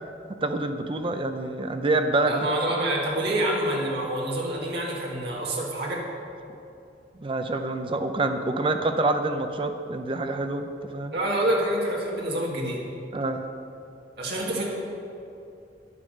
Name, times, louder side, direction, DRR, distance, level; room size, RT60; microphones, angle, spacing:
voice 1, 0.4-2.3 7.2-11.2 13.1-13.4, right 2 dB, 30° right, 7 dB, 0.6 m, -26 dB
voice 2, 2.2-6.0 11.1-12.8 14.2-14.6, right 1 dB, 60° right, -3 dB, 2.1 m, -27 dB
11.0 x 10.0 x 6.5 m, 2.7 s
head